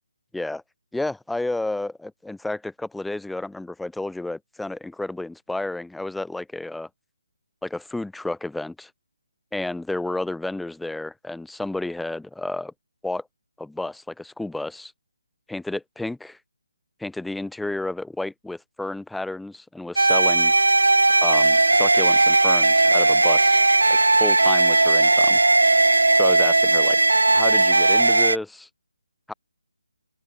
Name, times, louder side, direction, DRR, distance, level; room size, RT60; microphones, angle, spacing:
voice 1, 0.9-6.9 7.6-8.9 9.5-12.7 13.0-13.2 13.6-14.9 15.5-16.4 17.0-20.5 21.2-23.6 24.0-25.4 26.1-27.0 27.3-28.7 29.3-29.4, left 2 dB, ahead, 3.6 m, -31 dB
sound 1, 20.0-28.4, right 2 dB, 85° right, 0.4 m, -17 dB
open air
figure-of-eight pair, 150°, 0 cm